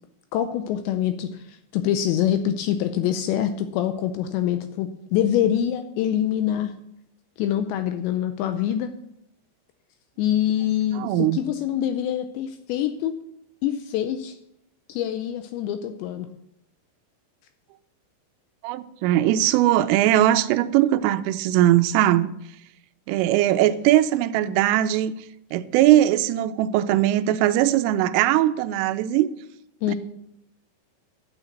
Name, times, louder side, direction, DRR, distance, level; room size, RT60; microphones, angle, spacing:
voice 1, 0.3-6.7 7.4-8.9 10.2-13.1 13.6-14.4 14.9-16.3 29.8-29.9, left 10 dB, 80° left, 2.6 m, -25 dB
voice 2, 11.0-11.4 18.6-22.3 23.1-25.1 25.5-29.3 29.9-30.0, right 13 dB, 90° right, 3.2 m, -20 dB
11.5 x 7.0 x 8.2 m
omnidirectional pair, 5.7 m